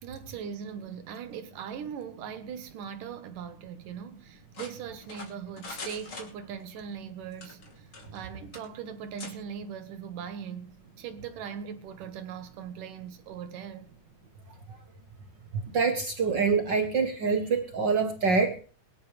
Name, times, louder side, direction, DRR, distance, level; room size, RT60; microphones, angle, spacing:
voice 1, 0.0-13.9, right 7 dB, 80° right, 3.0 m, -40 dB
sound 1, 4.5-6.8 7.3-8.3 8.5-8.7 9.2-9.4, left 3 dB, 40° left, 3.6 m, -43 dB
voice 2, 15.5-18.6, right 5 dB, 65° right, 1.1 m, -25 dB
22.5 x 12.0 x 3.3 m
omnidirectional pair, 3.7 m